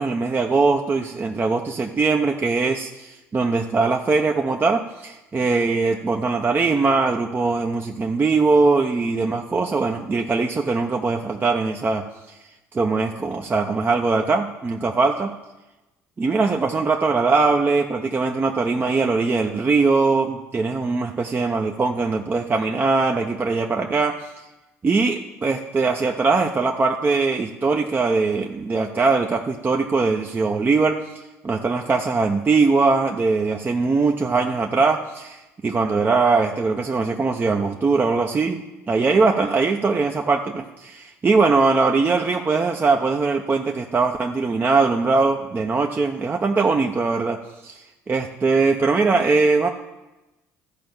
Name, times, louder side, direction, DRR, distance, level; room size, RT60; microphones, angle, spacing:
voice 1, 0.0-12.0 12.3-12.4 12.7-15.3 16.2-24.3 24.8-38.6 38.9-47.4 47.6-49.7, right 4 dB, 25° right, 3 dB, 0.8 m, -21 dB
13.5 x 5.2 x 7.2 m, 1.1 s
figure-of-eight pair, 55°, 8 cm